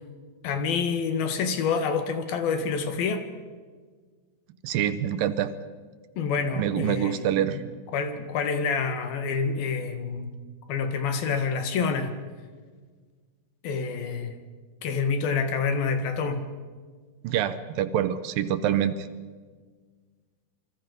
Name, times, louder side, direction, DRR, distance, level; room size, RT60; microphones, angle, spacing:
voice 1, 0.4-3.2 6.2-7.6 7.9-10.3 10.7-12.1 13.6-14.4 14.8-16.4, left 5 dB, 75° left, 7 dB, 3.6 m, -27 dB
voice 2, 4.6-5.5 6.6-7.6 17.2-19.1, right 10 dB, 75° right, 12 dB, 2.4 m, -26 dB
27.5 x 25.0 x 5.4 m, 1.5 s
omnidirectional pair, 4.4 m